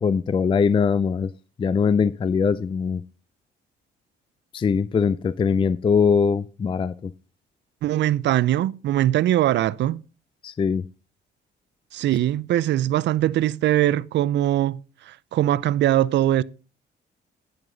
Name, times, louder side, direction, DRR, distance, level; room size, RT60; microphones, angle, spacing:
voice 1, 0.0-1.3 1.6-3.0 4.5-7.1 10.4-10.8, left 6 dB, 25° left, 0.4 m, -21 dB
voice 2, 7.8-10.0 11.9-14.8 15.1-16.4, right 13 dB, 65° right, 0.4 m, -21 dB
9.6 x 7.9 x 3.8 m
cardioid pair, 90°, 20 cm